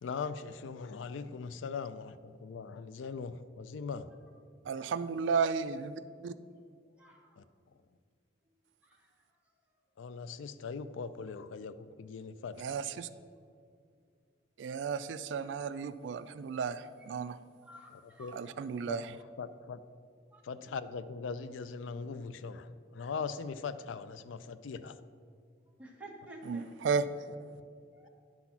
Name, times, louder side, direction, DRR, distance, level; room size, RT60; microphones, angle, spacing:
voice 1, 0.0-4.1 7.4-7.5 10.0-12.8 18.2-18.4 18.9-19.8 20.4-25.0 27.5-27.6, left 5 dB, 85° left, 13 dB, 0.4 m, -40 dB
voice 2, 4.6-6.3 12.5-13.1 14.6-17.4 18.3-19.1 26.4-27.1, right 5 dB, 75° right, 13 dB, 0.3 m, -34 dB
voice 3, 7.0-7.3 8.8-9.1 17.6-18.6 20.3-20.4 25.8-26.7 27.9-28.1, right 1 dB, 5° right, -2 dB, 1.2 m, -51 dB
10.5 x 4.1 x 5.8 m, 2.1 s
head